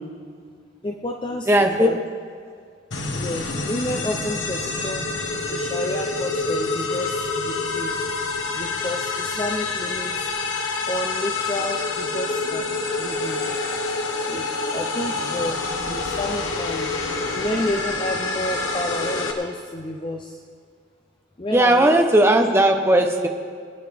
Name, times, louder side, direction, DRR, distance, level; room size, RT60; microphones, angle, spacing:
voice 1, 0.8-2.0 3.1-5.1 5.5-7.9 8.6-10.3 10.9-12.7 13.0-13.4 14.2-16.9 17.3-20.4 21.4-22.0, left 1 dB, 25° left, 2 dB, 0.7 m, -30 dB
voice 2, 1.5-1.9 21.5-23.3, right 1 dB, 15° right, 3 dB, 0.9 m, -17 dB
sound 1, 2.9-19.3, left 3 dB, 90° left, 1.5 m, -27 dB
23.5 x 9.9 x 3.5 m, 2.1 s
head